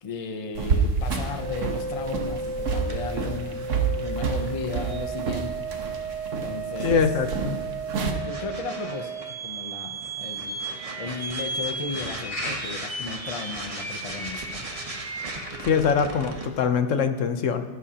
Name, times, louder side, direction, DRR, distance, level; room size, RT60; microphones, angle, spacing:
voice 1, 0.0-5.5 6.4-7.0 7.9-9.1 9.4-10.6 11.0-14.7, left 4 dB, 35° left, 6 dB, 0.7 m, -35 dB
sound 1, 0.5-8.1, right 5 dB, 80° right, 1.4 m, -29 dB
sound 2, 1.4-16.5, right 3 dB, 30° right, 1.0 m, -34 dB
voice 2, 6.8-7.6 15.7-17.6, left 6 dB, 80° left, 8 dB, 1.2 m, -23 dB
sound 3, 9.4-16.1, left 1 dB, 55° left, 4.1 m, -42 dB
15.0 x 12.5 x 2.9 m, 1.3 s
omnidirectional pair, 1.3 m